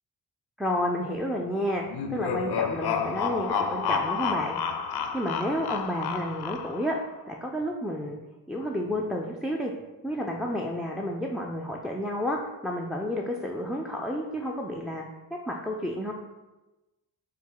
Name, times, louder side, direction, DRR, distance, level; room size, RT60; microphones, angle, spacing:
voice 1, 0.6-1.8 2.1-4.6 5.1-6.9 7.3-8.2 8.5-9.7 10.0-12.4 12.6-15.1 15.5-16.1, equal, ahead, -1 dB, 0.3 m, -30 dB
sound 1, 1.9-7.0, left 6 dB, 60° left, 0.5 m, -30 dB
4.3 x 2.2 x 3.8 m, 1.1 s
supercardioid pair, 45°, 44 cm